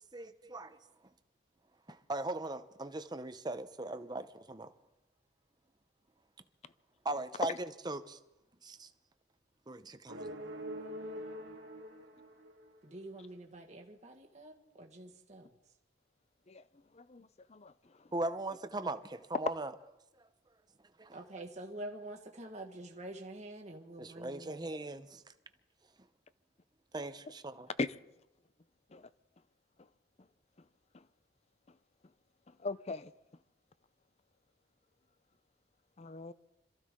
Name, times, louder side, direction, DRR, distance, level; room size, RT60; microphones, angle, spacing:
voice 1, 0.1-0.8 1.9-4.7 7.0-8.2 8.6-8.9 9.7-10.3 18.1-19.7 21.0-21.2 24.0-25.2 26.9-27.7, right 2 dB, 20° right, 0.8 m, -39 dB
sound 1, 10.1-13.0, equal, 70° right, 2.1 m, -44 dB
voice 2, 12.8-15.5 21.1-24.7, right 1 dB, 40° right, 1.5 m, -47 dB
voice 3, 16.9-17.7 27.8-27.9 28.9-29.1 32.6-33.1 36.0-36.3, left 3 dB, 35° left, 0.5 m, -39 dB
26.0 x 14.5 x 3.7 m
head